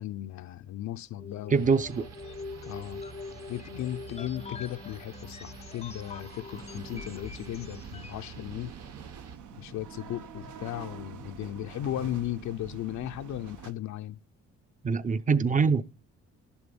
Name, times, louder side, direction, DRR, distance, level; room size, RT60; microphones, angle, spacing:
voice 1, 0.0-1.7 2.6-3.0 3.5-8.7 9.6-14.2, left 13 dB, 70° left, 0.5 m, -36 dB
sound 1, 1.2-8.3, left 4 dB, 20° left, 0.5 m, -44 dB
voice 2, 1.5-2.1 14.8-15.8, right 5 dB, 25° right, 0.5 m, -24 dB
sound 2, 1.5-9.4, right 5 dB, 55° right, 1.2 m, -48 dB
sound 3, 6.5-13.7, right 7 dB, 80° right, 0.9 m, -46 dB
11.0 x 7.1 x 5.2 m
cardioid pair, 90°, 30 cm